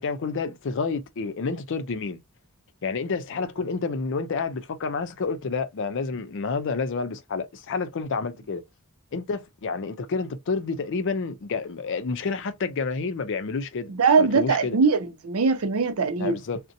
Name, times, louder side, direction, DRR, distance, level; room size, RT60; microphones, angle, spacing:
voice 1, 0.0-2.2 2.8-8.6 9.1-13.9 14.2-14.8 16.2-16.6, left 4 dB, 60° left, 0.5 m, -29 dB
voice 2, 13.9-16.4, right 4 dB, 85° right, 0.6 m, -21 dB
2.6 x 2.1 x 2.5 m
head